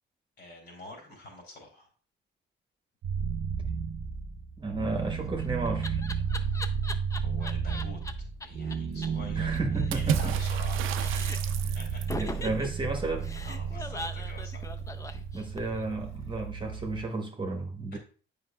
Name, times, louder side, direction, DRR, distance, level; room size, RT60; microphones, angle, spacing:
voice 1, 0.4-1.9 7.2-8.0 8.4-11.2 11.7-12.4 13.4-14.7 17.9-18.0, left 2 dB, 55° left, 0 dB, 2.9 m, -47 dB
sound 1, 3.0-17.1, right 6 dB, 65° right, 0.8 m, -32 dB
voice 2, 4.6-6.0 9.4-10.4 11.1-11.2 11.7-11.8 12.1-13.3 15.3-18.0, right 2 dB, 25° right, 3 dB, 1.1 m, -33 dB
Laughter, 5.0-8.1 8.4-8.5 8.7-8.8 9.0-9.1 9.4-10.7 10.9-11.6 12.1-15.8, left 2 dB, 15° left, 0.5 m, -40 dB
Water / Splash splatter, 9.9-12.3, right 9 dB, 90° right, 0.5 m, -33 dB
7.9 x 5.2 x 2.3 m, 0.38 s
cardioid pair, 90°, 20 cm